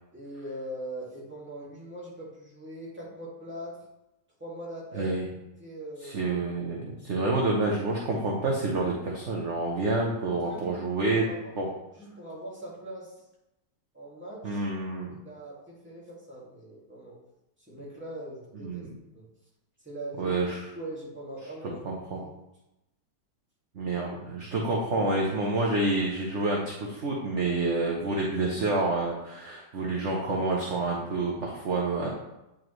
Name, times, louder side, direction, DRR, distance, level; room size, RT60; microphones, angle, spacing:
voice 1, 0.1-3.8 4.4-5.2 5.6-6.4 10.3-11.5 11.9-13.2 13.9-14.7 15.2-17.2 17.7-18.8 19.1-19.3 19.8-20.4 20.7-21.8 22.2-22.4, right 1 dB, 5° right, -6 dB, 2.1 m, -41 dB
voice 2, 4.9-5.3 6.0-11.3 11.6-11.7 14.4-15.1 18.5-19.0 20.2-20.7 21.8-22.2 23.7-32.1, right 2 dB, 50° right, -2 dB, 1.1 m, -28 dB
8.9 x 5.1 x 3.2 m, 0.92 s
omnidirectional pair, 1.8 m